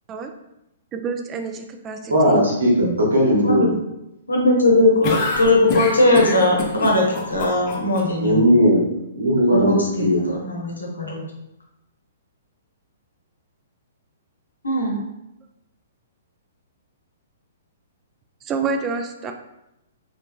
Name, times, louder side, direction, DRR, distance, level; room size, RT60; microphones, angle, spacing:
voice 1, 0.9-2.4 18.5-19.3, right 5 dB, 20° right, 6 dB, 0.3 m, -28 dB
voice 2, 2.1-3.6 8.2-8.8 9.1-10.2, equal, 70° right, -3 dB, 1.1 m, -17 dB
voice 3, 4.3-8.5 9.5-11.2 14.6-15.0, left 2 dB, 75° left, -1 dB, 0.8 m, -19 dB
sound 1, 5.0-8.0, left 2 dB, 35° left, 0.6 m, -26 dB
3.3 x 2.9 x 2.2 m, 0.88 s
figure-of-eight pair, 115°, 0 cm